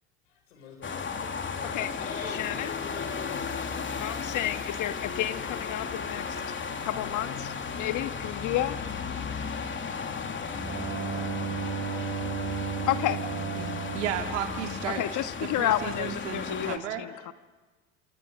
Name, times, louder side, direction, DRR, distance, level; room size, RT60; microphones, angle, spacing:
voice 1, 0.3-3.6, left 6 dB, 85° left, 4 dB, 6.6 m, -44 dB
sound 1, 0.8-16.8, left 5 dB, 30° left, 3.0 m, -35 dB
voice 2, 2.3-2.7 4.0-6.4 6.8-8.8 12.9-13.2 14.8-17.3, left 13 dB, 55° left, 10 dB, 1.6 m, -31 dB
Bowed string instrument, 10.5-15.4, right 5 dB, 35° right, 7.8 m, -34 dB
voice 3, 13.9-15.0 15.4-17.0, right 9 dB, 80° right, 4 dB, 2.3 m, -33 dB
28.5 x 27.5 x 6.6 m, 1.3 s
hypercardioid pair, 70°, 36 cm